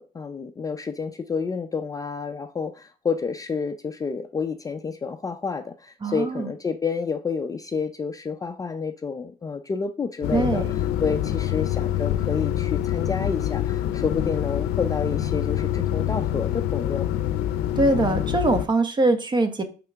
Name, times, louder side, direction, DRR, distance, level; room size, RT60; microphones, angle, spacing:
voice 1, 0.0-10.6 11.0-17.1, left 5 dB, 20° left, 0.4 m, -29 dB
voice 2, 6.0-6.5 10.3-10.7 17.8-19.6, right 2 dB, 25° right, 0.9 m, -22 dB
sound 1, 10.2-18.7, left 11 dB, 85° left, 0.5 m, -26 dB
5.7 x 3.8 x 4.5 m
cardioid pair, 110°, 17 cm